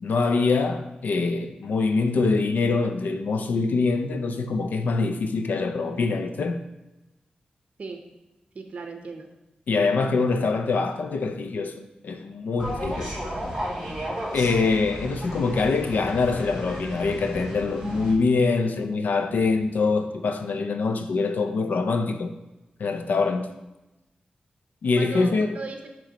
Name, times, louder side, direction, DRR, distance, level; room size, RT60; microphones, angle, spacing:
voice 1, 0.0-6.6 9.7-13.1 14.3-22.3 22.8-23.5 24.8-25.6, left 4 dB, 85° left, 0.5 m, -24 dB
voice 2, 8.5-9.3 24.9-25.9, right 3 dB, 50° right, 0.6 m, -36 dB
sound 1, 12.6-18.1, equal, ahead, 2.4 m, -33 dB
7.4 x 3.1 x 5.0 m
wide cardioid pair, 145°, 3 cm